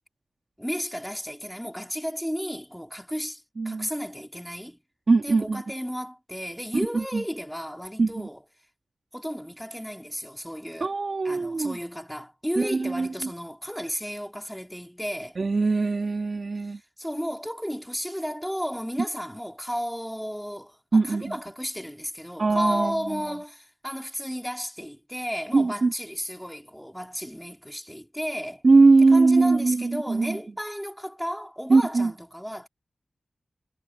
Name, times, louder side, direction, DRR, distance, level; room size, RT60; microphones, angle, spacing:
voice 1, 0.6-4.8 5.2-8.4 9.1-10.9 11.2-15.4 16.6-28.6 29.1-32.7, equal, ahead, 3.4 m, -33 dB
voice 2, 3.6-3.9 5.1-5.6 6.9-7.2 8.0-8.3 10.8-11.7 12.6-13.1 15.4-16.8 20.9-21.3 22.4-23.2 25.5-25.9 28.6-30.4 31.7-32.1, right 3 dB, 50° right, 2.1 m, -21 dB
wide cardioid pair, 90°, 0 cm